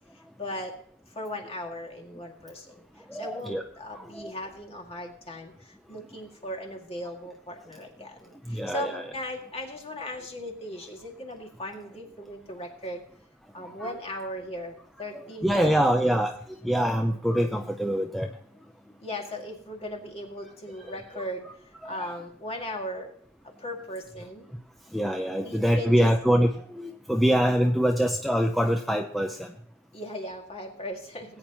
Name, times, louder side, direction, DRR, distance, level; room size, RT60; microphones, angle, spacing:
voice 1, 0.4-0.8 1.2-2.8 3.1-13.0 13.5-16.2 19.0-23.1 23.4-24.5 25.4-26.1 29.9-31.4, left 1 dB, 30° left, 2 dB, 2.1 m, -38 dB
voice 2, 3.1-3.6 3.9-4.3 8.5-9.0 13.8-13.9 15.1-16.4 16.6-18.3 21.1-21.3 21.8-22.1 24.9-29.5, equal, ahead, 3 dB, 0.6 m, -25 dB
18.5 x 9.1 x 2.9 m, 0.62 s
head